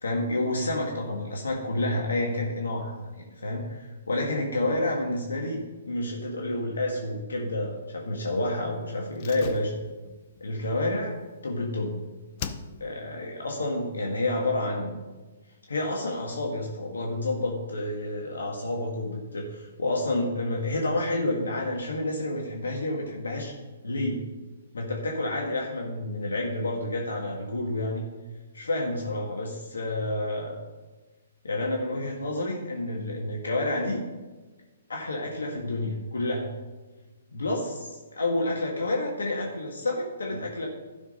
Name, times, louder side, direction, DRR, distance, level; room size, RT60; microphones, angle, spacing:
voice 1, 0.0-5.6 5.9-9.7 10.4-11.2 11.4-12.0 12.8-15.0 15.7-23.5 23.8-24.2 24.7-28.1 28.5-30.6 31.4-34.0 34.9-36.5 37.3-40.7, left 2 dB, 90° left, 0 dB, 1.7 m, -29 dB
Slam, 9.1-11.9 12.4-13.1 13.4-13.5, left 7 dB, 40° left, 0.7 m, -41 dB
12.0 x 6.3 x 5.4 m, 1.2 s
hypercardioid pair, 140°, 0 cm